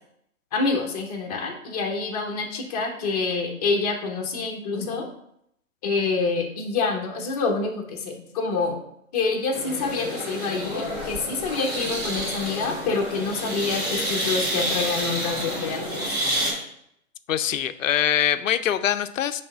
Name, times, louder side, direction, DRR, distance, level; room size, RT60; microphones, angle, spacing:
voice 1, 0.5-5.1 5.8-8.8 9.1-16.2, left 4 dB, 25° left, 1 dB, 1.0 m, -27 dB
sound 1, 9.5-16.5, equal, 20° right, 2.2 m, -29 dB
voice 2, 17.3-19.4, left 10 dB, 65° left, 11 dB, 0.6 m, -23 dB
5.5 x 3.4 x 5.6 m, 0.74 s
hypercardioid pair, 145°, 42 cm